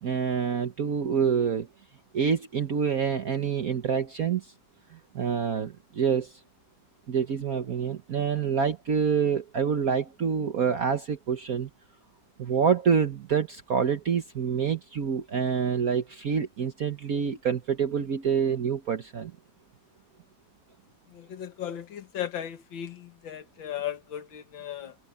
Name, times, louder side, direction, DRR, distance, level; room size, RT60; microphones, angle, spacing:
voice 1, 0.0-1.7 2.1-4.5 5.1-6.3 7.1-11.7 12.4-19.3, right 6 dB, 55° right, 1.4 m, -27 dB
voice 2, 21.1-25.0, left 10 dB, 85° left, 2.2 m, -36 dB
omnidirectional pair, 2.1 m